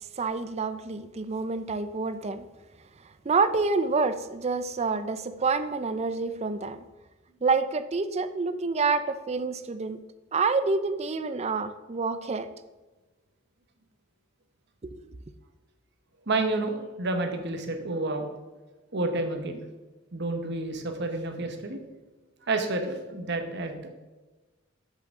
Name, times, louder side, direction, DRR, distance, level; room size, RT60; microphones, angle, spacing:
voice 1, 0.2-2.4 3.2-6.8 7.4-10.0 10.3-12.5 14.8-15.1, right 4 dB, 30° right, 12 dB, 0.4 m, -28 dB
voice 2, 16.3-18.3 18.9-19.6 20.1-21.8 22.5-23.9, right 2 dB, 55° right, 5 dB, 1.1 m, -29 dB
7.5 x 7.1 x 3.6 m, 1.2 s
head